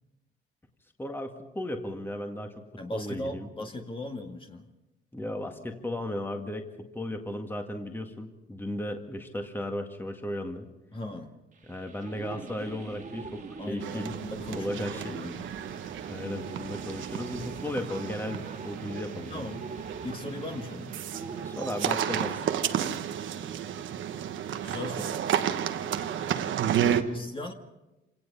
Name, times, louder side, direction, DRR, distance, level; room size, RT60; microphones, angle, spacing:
voice 1, 1.0-2.5 2.9-3.5 5.1-10.7 11.7-14.1 14.6-15.2 16.1-19.5 21.4-22.4 26.8-27.1, left 1 dB, 10° left, 4 dB, 1.9 m, -35 dB
voice 2, 2.8-4.7 10.9-11.3 13.6-15.5 19.3-19.7 20.0-21.0 24.6-25.4 27.1-27.5, left 2 dB, 25° left, 3 dB, 2.0 m, -38 dB
sound 1, 11.5-22.5, right 4 dB, 40° right, 2.2 m, -44 dB
sound 2, 12.6-18.0, right 6 dB, 55° right, 2.2 m, -50 dB
sound 3, 13.8-27.0, right 10 dB, 75° right, 1.2 m, -32 dB
26.5 x 17.5 x 5.6 m, 1.0 s
cardioid pair, 90°, 20 cm